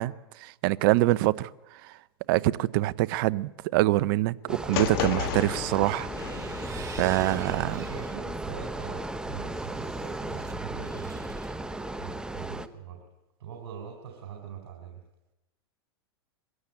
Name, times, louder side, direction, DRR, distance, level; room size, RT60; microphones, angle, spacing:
voice 1, 0.0-2.0 2.3-6.1 7.0-7.7, right 17 dB, 55° right, 0.8 m, -25 dB
sound 1, 4.5-12.7, right 2 dB, 5° right, 1.0 m, -35 dB
sound 2, 4.7-7.0, left 12 dB, 60° left, 1.6 m, -33 dB
sound 3, 6.0-8.3 8.7-11.5, right 6 dB, 25° right, 2.4 m, -48 dB
voice 2, 7.6-11.4 11.9-13.0 13.4-15.0, right 7 dB, 70° right, 4.5 m, -42 dB
22.5 x 16.0 x 8.6 m
hypercardioid pair, 120°, 13 cm